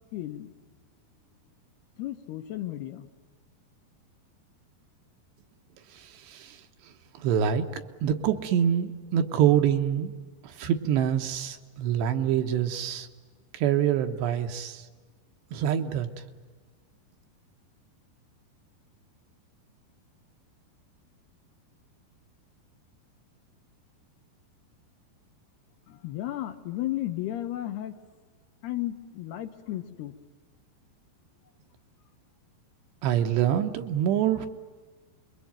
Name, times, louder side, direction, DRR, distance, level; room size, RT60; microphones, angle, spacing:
voice 1, 0.1-0.5 2.0-3.1 25.9-28.0 28.6-30.1, left 14 dB, 70° left, 7 dB, 3.1 m, -34 dB
voice 2, 5.9-6.6 7.2-10.1 10.4-13.1 13.5-14.8 15.5-16.1 33.0-34.5, right 9 dB, 75° right, 6 dB, 3.4 m, -25 dB
27.0 x 22.5 x 9.2 m, 1.4 s
omnidirectional pair, 5.1 m